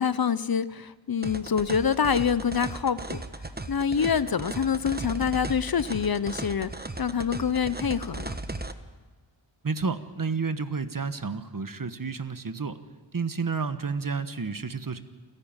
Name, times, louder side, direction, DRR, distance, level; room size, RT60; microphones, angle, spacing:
voice 1, 0.0-3.2 3.7-6.7 7.0-8.3, left 7 dB, 45° left, 16 dB, 0.7 m, -26 dB
sound 1, 1.2-8.7, right 2 dB, 20° right, 1.1 m, -36 dB
voice 2, 9.6-12.8 13.1-15.0, right 4 dB, 40° right, 11 dB, 1.3 m, -30 dB
28.5 x 11.0 x 8.9 m, 1.3 s
wide cardioid pair, 60°, 49 cm